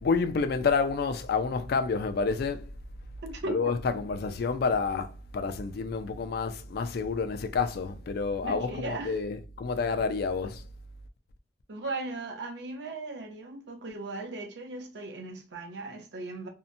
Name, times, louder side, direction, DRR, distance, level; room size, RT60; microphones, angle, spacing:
voice 1, 0.0-2.7 3.4-10.6, left 4 dB, 60° left, 0.3 m, -29 dB
voice 2, 3.2-3.7 8.4-9.2 11.7-16.5, right 2 dB, 65° right, 0.7 m, -37 dB
2.7 x 2.1 x 2.5 m
head